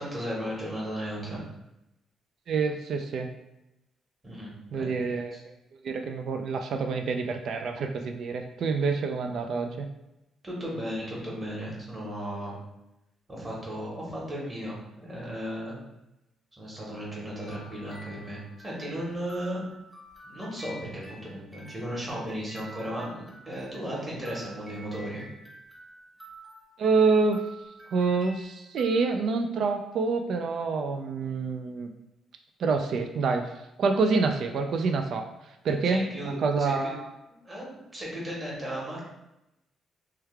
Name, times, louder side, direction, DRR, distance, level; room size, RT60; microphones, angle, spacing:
voice 1, 0.0-1.4 4.2-4.9 10.4-12.6 13.3-15.8 16.5-19.6 20.2-25.2 35.9-36.9 37.4-39.0, equal, 25° right, -5 dB, 1.4 m, -35 dB
voice 2, 2.5-3.3 4.7-5.4 5.7-9.9 26.8-27.4 27.9-31.9 32.6-33.5 33.8-37.1, right 4 dB, 65° right, 5 dB, 0.3 m, -27 dB
sound 1, 17.3-29.1, right 1 dB, 5° right, 1.0 m, -49 dB
3.2 x 2.3 x 3.3 m, 0.91 s
cardioid pair, 90°, 0 cm